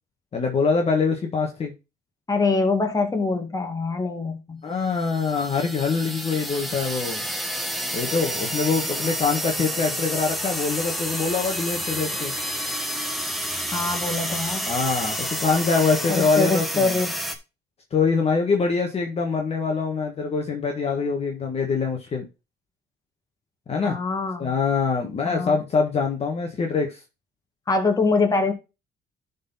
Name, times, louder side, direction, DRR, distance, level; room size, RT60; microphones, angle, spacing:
voice 1, 0.3-1.7 4.6-7.2 7.9-12.3 14.7-16.9 17.9-22.3 23.7-24.0 24.4-27.0, left 4 dB, 35° left, 2 dB, 1.6 m, -24 dB
voice 2, 2.3-4.6 13.7-14.7 16.1-17.1 23.8-24.5 25.3-25.6 27.7-28.5, left 3 dB, 20° left, 4 dB, 2.1 m, -24 dB
sound 1, 4.9-17.4, equal, ahead, 1.4 m, -29 dB
11.0 x 4.2 x 4.1 m, 0.27 s
cardioid pair, 110°, 17 cm